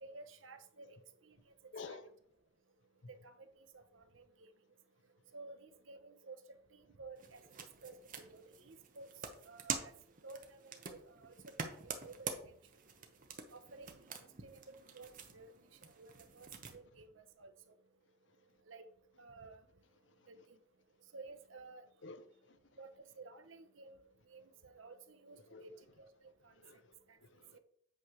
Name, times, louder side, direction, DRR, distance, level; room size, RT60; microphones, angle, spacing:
voice 1, 0.0-0.9 1.2-1.4 1.9-2.0 3.1-4.2 5.3-6.4 6.7-7.4 7.8-9.1 9.5-9.9 10.2-11.7 12.0-12.4 13.5-14.0 14.4-15.5 16.0-17.5 18.7-18.8 19.2-19.6 20.3-20.4 21.1-21.8 22.8-22.9 23.2-24.0 24.3-25.7 26.0-26.1 26.4-26.5 27.5-27.6, right 3 dB, 75° right, 9 dB, 0.8 m, -54 dB
voice 2, 1.7-2.1 22.0-22.6 25.5-25.7 26.5-26.9 27.2-27.6, left 4 dB, 65° left, 12 dB, 0.6 m, -51 dB
sound 1, 7.2-16.8, right 5 dB, 40° right, 0.9 m, -47 dB
8.3 x 3.3 x 6.0 m, 0.64 s
head